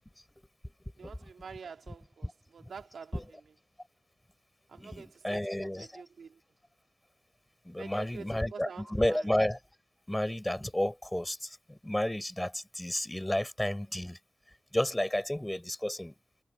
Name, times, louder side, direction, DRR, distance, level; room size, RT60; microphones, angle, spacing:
voice 1, 1.0-3.2 4.7-5.5 5.7-6.4 7.8-9.3 13.3-13.5, right 6 dB, 85° right, 2.6 m, -47 dB
voice 2, 4.7-6.0 7.6-9.6 10.1-14.2 14.7-16.1, left 1 dB, 10° left, 6.0 m, -32 dB
wide cardioid pair, 110°, 0 cm